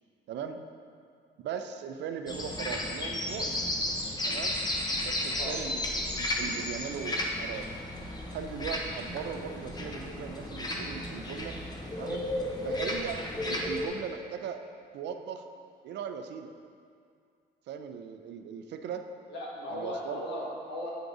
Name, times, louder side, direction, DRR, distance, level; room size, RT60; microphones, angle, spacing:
voice 1, 0.3-0.6 1.4-3.7 4.2-4.6 5.0-7.7 8.3-11.6 12.0-12.3 12.6-14.6 14.9-15.5 15.8-16.5 17.7-19.0 19.7-20.2, right 7 dB, 80° right, 7 dB, 0.4 m, -39 dB
sound 1, 2.3-13.9, left 1 dB, 20° left, 0.7 m, -33 dB
voice 2, 19.3-20.9, equal, 80° left, -4 dB, 1.4 m, -37 dB
8.8 x 4.7 x 2.6 m, 2.3 s
cardioid pair, 95°, 18 cm